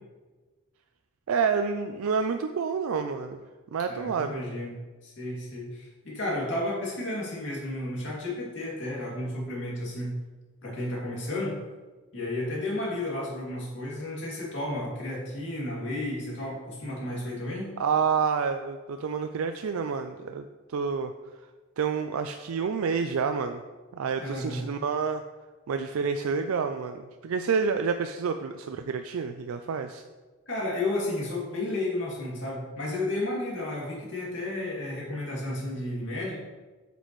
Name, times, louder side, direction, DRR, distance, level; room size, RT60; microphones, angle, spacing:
voice 1, 1.3-3.4 3.7-4.4 17.8-20.5 20.7-21.1 21.8-23.6 23.9-25.2 25.7-30.0, right 5 dB, 85° right, 7 dB, 0.4 m, -28 dB
voice 2, 3.9-4.7 5.0-10.2 10.6-11.6 12.1-17.7 24.2-24.6 30.5-36.4, left 1 dB, 60° left, -4 dB, 2.5 m, -32 dB
8.2 x 6.8 x 3.1 m, 1.3 s
head